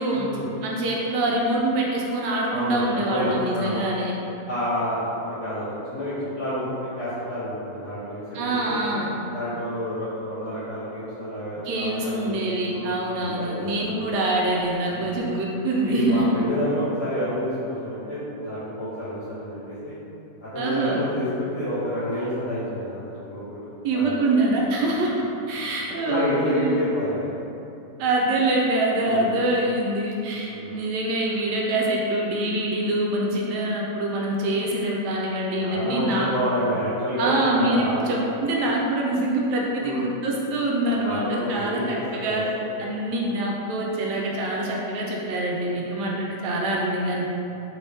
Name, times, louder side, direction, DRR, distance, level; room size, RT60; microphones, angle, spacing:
voice 1, 0.1-0.5 2.5-3.8 4.5-8.8 9.3-12.3 12.7-14.0 14.9-15.1 15.8-19.9 20.4-24.3 25.8-27.4 28.9-29.3 30.5-30.7 35.6-38.1 39.8-40.1 40.8-42.7, equal, 55° left, -12 dB, 1.1 m, -29 dB
voice 2, 0.6-4.2 8.3-9.1 11.6-16.3 20.6-21.0 23.8-25.1 25.5-26.8 28.0-36.3 37.2-42.4 42.8-47.3, right 1 dB, 90° right, -3 dB, 1.2 m, -25 dB
3.1 x 2.7 x 3.3 m, 2.9 s
omnidirectional pair, 1.7 m